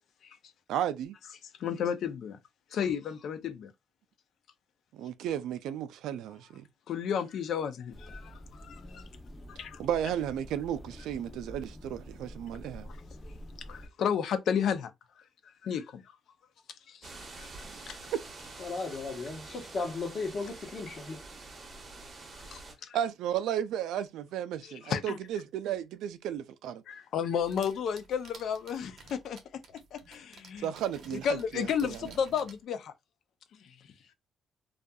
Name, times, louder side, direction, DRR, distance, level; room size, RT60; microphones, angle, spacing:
voice 1, 0.7-1.2 4.9-6.6 9.8-12.9 17.6-17.8 18.1-18.2 22.9-26.8 30.6-32.1, right 10 dB, 85° right, 0.3 m, -34 dB
voice 2, 1.6-2.4 2.7-3.7 6.9-9.0 9.5-9.8 13.7-14.9 15.6-16.1 16.9-17.1 17.4-17.5 17.9-18.0 22.5-23.0 24.6-25.2 26.9-29.4 29.9-30.7 31.1-32.9 33.5-33.7, left 7 dB, 70° left, 0.4 m, -32 dB
sound 1, 7.9-13.9, equal, 25° left, 0.6 m, -47 dB
sound 2, 17.0-22.7, right 3 dB, 40° right, 0.8 m, -47 dB
voice 3, 18.6-21.2, left 3 dB, 50° left, 0.9 m, -36 dB
sound 3, 27.4-32.6, right 4 dB, 65° right, 0.7 m, -53 dB
2.6 x 2.3 x 2.2 m
cardioid pair, 90°, 0 cm